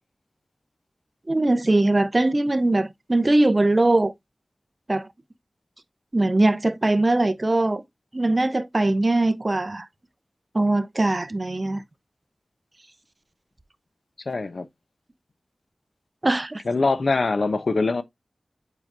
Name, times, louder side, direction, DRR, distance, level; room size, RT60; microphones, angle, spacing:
voice 1, 1.3-4.1 4.9-5.1 6.1-7.8 8.1-9.9 10.5-11.8 16.2-16.6, right 2 dB, 35° right, 0.8 m, -21 dB
voice 2, 14.3-14.7 16.7-18.0, left 3 dB, 75° left, 0.7 m, -23 dB
7.7 x 5.0 x 2.6 m
wide cardioid pair, 60°, 0 cm